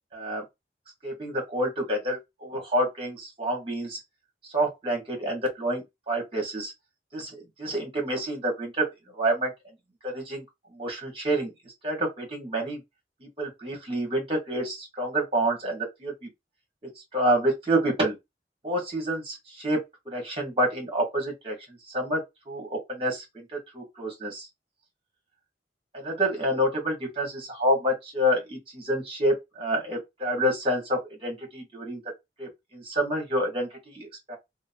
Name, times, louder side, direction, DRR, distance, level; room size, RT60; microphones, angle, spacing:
voice 1, 0.1-0.4 1.0-4.0 4.4-6.7 7.1-8.8 9.1-9.5 10.0-10.4 10.7-11.5 11.8-12.8 13.2-16.3 17.1-18.1 18.6-21.6 21.9-22.2 22.5-23.5 23.7-24.5 25.9-32.0 32.4-34.4, right 1 dB, 30° right, 1.2 m, -28 dB
2.9 x 2.1 x 2.5 m
head